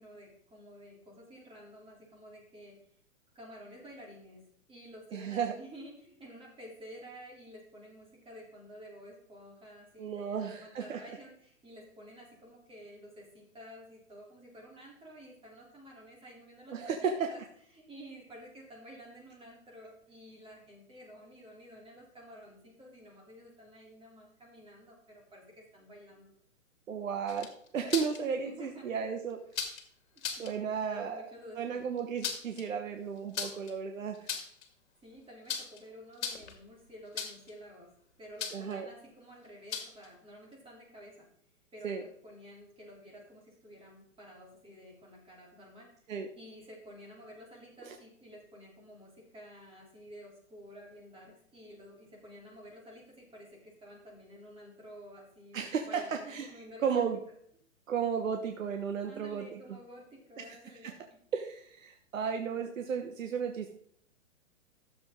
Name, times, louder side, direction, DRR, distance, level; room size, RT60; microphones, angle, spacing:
voice 1, 0.0-2.8 3.3-4.4 4.7-17.4 17.7-26.3 28.4-28.9 30.1-31.8 35.0-37.9 38.2-41.3 41.7-57.3 59.1-60.9 62.5-62.8, equal, 15° right, -2 dB, 3.3 m, -51 dB
voice 2, 5.1-5.5 10.0-11.0 16.7-17.3 26.9-29.4 30.4-34.4 38.5-38.9 41.8-42.0 46.1-46.3 47.8-47.9 55.5-56.5 56.8-57.2 57.9-59.6 60.4-60.5 60.8-61.0 61.3-63.7, right 6 dB, 75° right, 5 dB, 1.3 m, -34 dB
sound 1, 27.3-28.2 29.5-29.8 30.2-30.5 32.0-32.6 33.3-33.7 34.1-34.7 35.5-35.8 36.1-36.6 37.2-37.5 38.4-38.7 39.7-40.1, left 7 dB, 60° left, 2.2 m, -37 dB
13.0 x 7.3 x 3.7 m, 0.64 s
hypercardioid pair, 130°, 40 cm